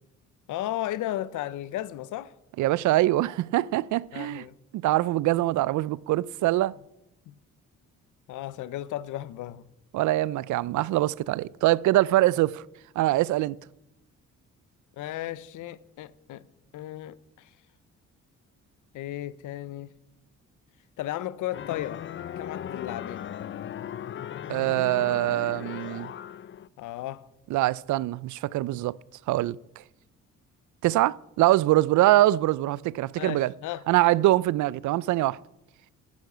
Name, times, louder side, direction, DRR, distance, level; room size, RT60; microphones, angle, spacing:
voice 1, 0.5-2.3 4.1-4.6 7.3-7.4 8.3-9.6 15.0-16.4 16.7-17.5 18.9-19.9 21.0-22.0 22.4-23.2 26.8-27.2 33.2-33.8, left 13 dB, 80° left, 0.7 m, -34 dB
voice 2, 2.6-4.4 4.7-6.7 9.9-12.6 13.0-13.6 24.5-26.1 27.5-28.9 29.3-29.6 30.8-33.5 33.9-35.4, right 16 dB, 75° right, 0.4 m, -23 dB
sound 1, 21.5-26.7, left 10 dB, 40° left, 0.4 m, -37 dB
10.5 x 9.8 x 6.7 m
cardioid pair, 90°, 30 cm